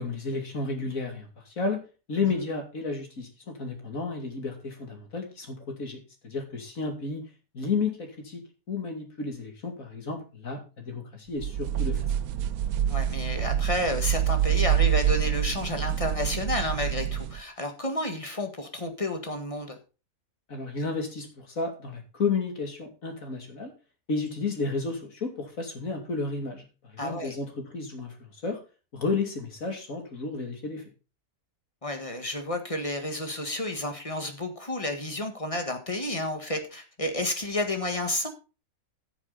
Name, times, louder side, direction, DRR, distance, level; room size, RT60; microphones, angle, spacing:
voice 1, 0.0-1.8 2.1-7.2 7.5-8.4 8.7-12.1 20.5-23.7 24.1-28.1 28.4-28.6 28.9-30.8, left 4 dB, 70° left, 3 dB, 3.0 m, -32 dB
sound 1, 11.4-17.4, right 10 dB, 90° right, 1.2 m, -26 dB
voice 2, 12.9-19.8 27.0-27.3 31.8-38.3, left 1 dB, 25° left, 5 dB, 1.7 m, -31 dB
13.5 x 7.2 x 4.1 m, 0.33 s
omnidirectional pair, 1.5 m